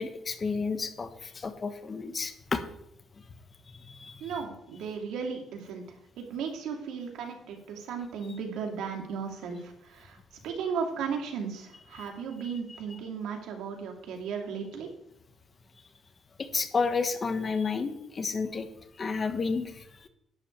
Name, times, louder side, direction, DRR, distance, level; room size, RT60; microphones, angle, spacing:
voice 1, 0.0-2.6 3.7-4.4 12.0-12.1 16.4-18.7 19.0-20.1, left 4 dB, 35° left, 9 dB, 1.2 m, -31 dB
voice 2, 4.2-5.8 6.2-10.2 10.4-14.9, right 6 dB, 85° right, 2 dB, 2.5 m, -35 dB
11.5 x 5.0 x 8.6 m, 0.76 s
cardioid pair, 105°, 0 cm